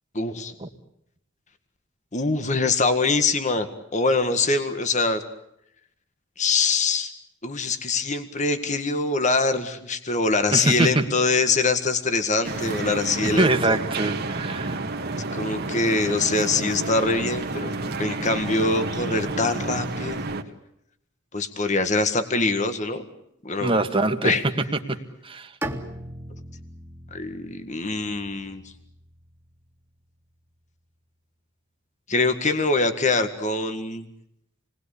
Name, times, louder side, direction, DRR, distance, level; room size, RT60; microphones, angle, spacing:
voice 1, 0.1-0.5 2.1-3.7 3.9-5.2 6.4-7.1 7.4-13.8 15.3-20.2 21.3-23.1 23.4-23.8 24.2-24.4 27.1-28.6 32.1-34.1, left 3 dB, 35° left, 8 dB, 1.8 m, -24 dB
voice 2, 10.5-11.0 13.4-14.8 15.1-15.2 23.6-24.3 24.9-25.0 25.2-25.5, right 2 dB, 25° right, 6 dB, 1.9 m, -23 dB
sound 1, 12.4-20.4, right 2 dB, 50° right, 2.0 m, -30 dB
Bowed string instrument, 25.6-29.5, right 1 dB, 10° right, 2.3 m, -38 dB
28.5 x 21.0 x 8.5 m, 0.78 s
head